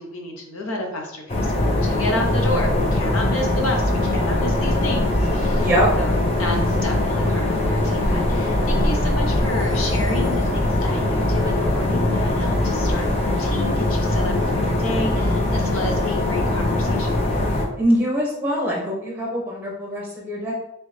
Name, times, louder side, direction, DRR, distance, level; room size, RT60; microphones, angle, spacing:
voice 1, 0.0-5.7 6.0-17.3, left 1 dB, 90° left, 2 dB, 0.8 m, -30 dB
sound 1, 1.3-17.7, left 1 dB, 30° left, 0.5 m, -21 dB
sound 2, 7.8-10.8, left 1 dB, 65° left, 1.2 m, -34 dB
voice 2, 17.8-20.5, equal, 10° right, -4 dB, 0.9 m, -23 dB
3.1 x 2.8 x 3.2 m, 0.83 s
head